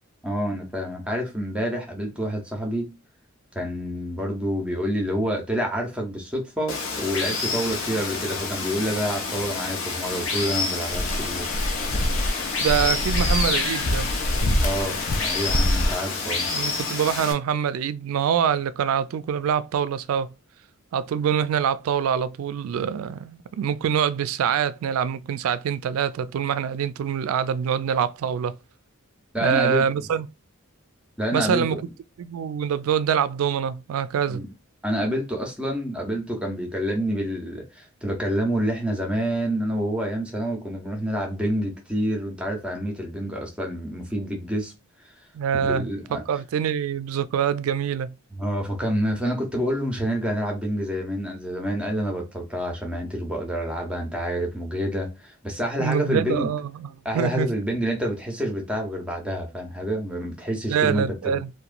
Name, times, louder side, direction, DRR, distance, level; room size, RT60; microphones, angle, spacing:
voice 1, 0.2-2.9 3.5-11.5 14.6-15.0 15.2-16.5 29.3-29.8 31.2-31.7 34.3-34.5 34.8-44.7 45.5-46.2 48.3-56.5 57.0-61.4, equal, 5° right, 0.6 m, -28 dB
Water, 6.7-17.3, left 4 dB, 70° left, 0.7 m, -28 dB
sound 1, 10.9-15.9, left 1 dB, 35° left, 0.3 m, -25 dB
voice 2, 12.6-14.1 16.5-20.3 20.9-28.6 29.4-30.3 31.3-31.9 32.2-34.4 45.3-48.1 55.8-57.5 60.7-61.5, right 8 dB, 80° right, 0.3 m, -25 dB
2.9 x 2.2 x 2.4 m
head